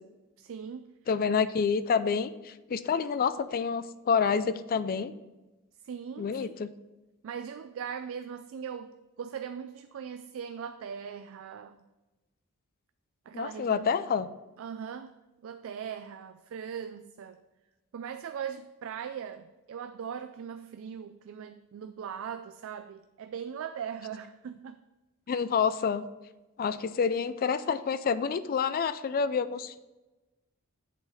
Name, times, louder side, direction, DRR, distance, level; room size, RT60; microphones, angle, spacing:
voice 1, 0.4-0.9 1.3-1.4 5.8-6.5 7.2-11.8 13.3-13.9 14.6-15.1 15.4-17.4 17.9-24.8, right 7 dB, 65° right, 9 dB, 0.3 m, -40 dB
voice 2, 1.1-5.1 6.2-6.7 13.3-14.3 25.3-26.1 26.6-29.8, left 6 dB, 40° left, 14 dB, 0.3 m, -28 dB
7.3 x 4.0 x 6.3 m, 1.1 s
head